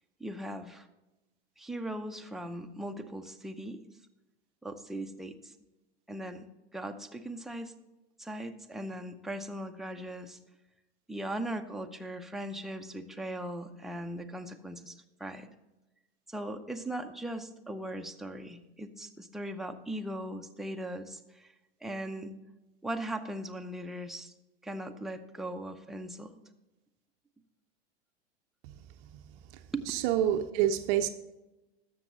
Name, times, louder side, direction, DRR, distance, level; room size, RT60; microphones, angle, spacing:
voice 1, 0.2-0.9 1.6-3.8 4.6-5.5 6.1-6.5 6.7-7.7 8.2-10.4 11.1-15.5 16.3-21.5 21.8-22.3 22.8-24.3 24.6-26.3 29.7-29.9, right 1 dB, ahead, 0.6 m, -39 dB
voice 2, 29.9-31.1, right 11 dB, 45° right, 0.6 m, -27 dB
13.0 x 6.9 x 4.0 m
hypercardioid pair, 95°, 31 cm